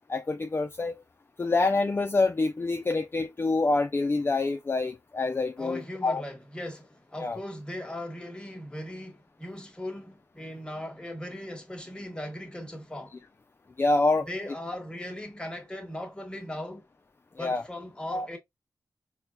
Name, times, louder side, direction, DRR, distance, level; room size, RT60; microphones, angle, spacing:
voice 1, 0.1-1.0 1.4-6.2 7.2-7.4 13.8-14.5 17.4-17.6 18.1-18.3, left 3 dB, 35° left, 0.4 m, -26 dB
voice 2, 5.6-13.1 14.3-16.8 17.4-18.4, left 1 dB, 15° left, 1.2 m, -38 dB
4.2 x 2.1 x 2.2 m
cardioid pair, 50°, 7 cm